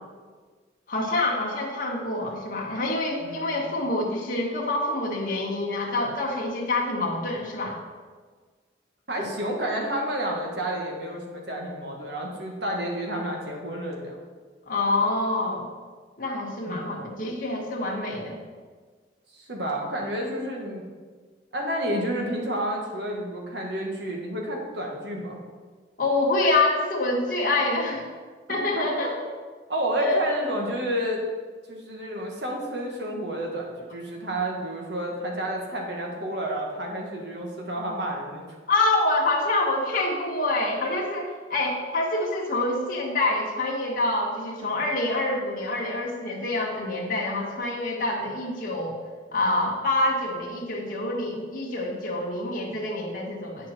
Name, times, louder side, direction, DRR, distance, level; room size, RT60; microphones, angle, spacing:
voice 1, 0.9-7.8 9.2-9.3 14.7-15.7 16.2-18.4 26.0-28.1 28.5-29.1 30.0-30.2 38.7-48.9 49.3-53.7, left 2 dB, 45° left, -3 dB, 1.6 m, -26 dB
voice 2, 3.2-3.6 9.1-14.2 16.7-17.0 19.3-20.8 21.5-25.4 28.7-29.1 29.7-31.2 31.7-38.4, right 1 dB, 65° right, -1 dB, 1.7 m, -30 dB
9.1 x 6.9 x 4.4 m, 1.5 s
head